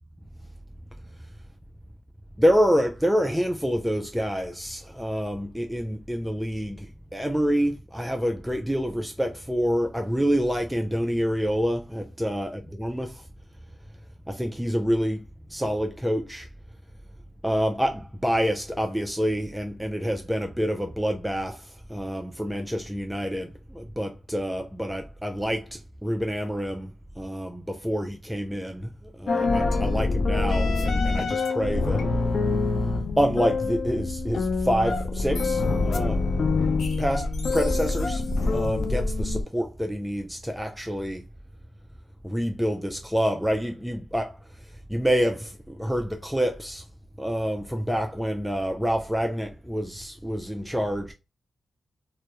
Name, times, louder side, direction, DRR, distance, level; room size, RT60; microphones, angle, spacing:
voice 1, 2.4-13.2 14.3-15.2 15.5-16.5 17.4-32.0 33.2-36.2 37.0-41.2 42.2-44.4 44.9-46.8 47.2-51.1, equal, 5° right, 0.4 m, -27 dB
sound 1, 29.3-39.4, left 3 dB, 65° left, 0.4 m, -25 dB
2.2 x 2.0 x 2.8 m
cardioid pair, 55°, 0 cm